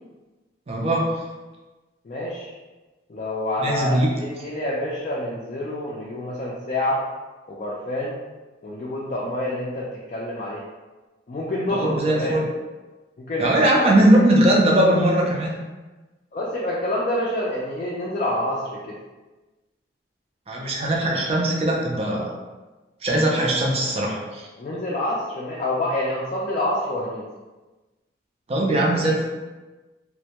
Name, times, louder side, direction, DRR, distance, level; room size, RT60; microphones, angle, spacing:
voice 1, 0.7-1.0 3.6-4.1 11.7-12.4 13.4-15.5 20.5-22.3 23.0-24.5 28.5-29.2, right 1 dB, 35° right, -2 dB, 0.4 m, -20 dB
voice 2, 2.0-2.5 3.1-7.0 7.5-8.2 8.6-10.6 11.3-12.4 13.2-13.9 16.3-19.0 24.6-27.3, left 1 dB, 45° left, -5 dB, 0.3 m, -27 dB
2.1 x 2.1 x 2.8 m, 1.2 s
head